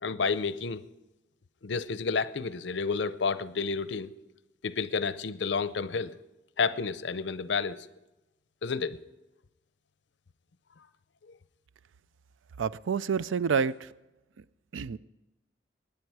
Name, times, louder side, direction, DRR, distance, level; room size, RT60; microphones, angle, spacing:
voice 1, 0.0-0.8 1.6-4.1 4.6-6.2 6.6-7.9 8.6-9.0, left 5 dB, 65° left, 0.6 m, -30 dB
voice 2, 12.6-13.9 14.7-15.0, right 6 dB, 90° right, 0.4 m, -28 dB
21.5 x 9.5 x 4.7 m
head